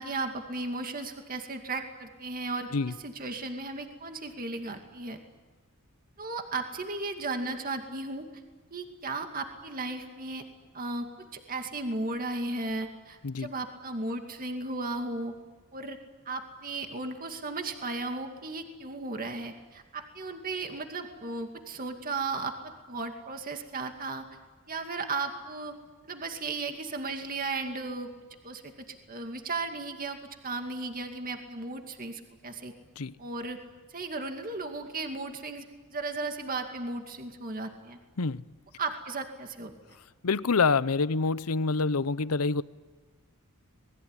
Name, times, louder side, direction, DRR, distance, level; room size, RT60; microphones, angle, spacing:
voice 1, 0.0-5.2 6.2-8.3 8.7-10.4 10.7-15.3 15.7-16.0 16.3-24.2 24.7-25.7 26.0-28.1 28.4-30.2 30.4-32.7 33.2-33.6 33.9-35.7 35.9-38.0 38.8-39.7, right 3 dB, 40° right, 2.4 m, -35 dB
voice 2, 40.2-42.6, left 4 dB, 85° left, 0.8 m, -26 dB
27.5 x 21.0 x 9.9 m
head